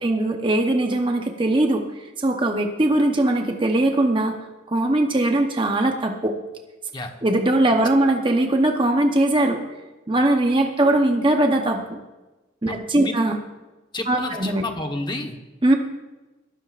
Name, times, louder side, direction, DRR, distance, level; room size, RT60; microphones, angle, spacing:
voice 1, 0.0-1.8 2.2-4.4 4.7-6.4 7.2-9.6 10.1-12.0 12.6-13.4 14.1-14.6 15.6-15.7, right 1 dB, 25° right, 3 dB, 0.9 m, -20 dB
voice 2, 12.7-13.1 13.9-15.4, left 2 dB, 25° left, 4 dB, 1.2 m, -30 dB
22.0 x 15.5 x 2.5 m, 1.1 s
head